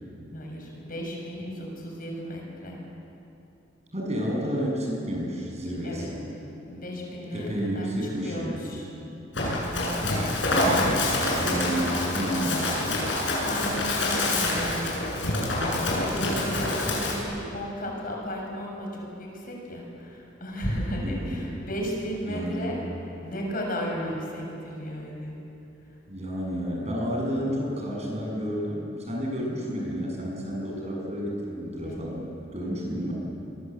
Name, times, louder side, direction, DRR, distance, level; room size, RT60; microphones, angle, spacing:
voice 1, 0.3-2.8 5.8-6.1 6.7-7.9 8.2-8.8 9.6-10.1 11.6-11.8 13.4-22.8 23.2-25.3 31.8-31.9, equal, 50° left, 0 dB, 6.8 m, -34 dB
voice 2, 3.9-6.2 7.3-8.6 10.5-11.0 11.3-12.8 21.0-21.5 22.3-22.7 26.1-33.1, equal, 35° right, -2 dB, 7.6 m, -31 dB
Run, 9.3-17.2, left 2 dB, 75° left, 7.8 m, -26 dB
26.5 x 23.5 x 8.3 m, 2.8 s
head